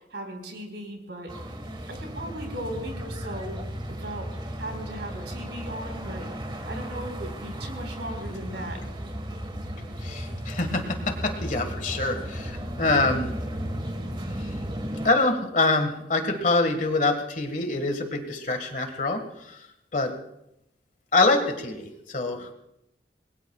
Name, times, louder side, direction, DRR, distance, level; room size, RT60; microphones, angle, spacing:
voice 1, 0.1-1.3 1.9-3.6 3.9-4.3 4.6-6.3 6.7-8.9, right 1 dB, 75° right, 3 dB, 4.6 m, -37 dB
sound 1, 1.3-15.1, equal, 25° right, 1.6 m, -35 dB
voice 2, 10.0-13.4 15.0-19.6 19.9-20.1 21.1-22.5, left 3 dB, 45° left, 6 dB, 1.8 m, -25 dB
27.0 x 21.5 x 2.4 m, 0.83 s
head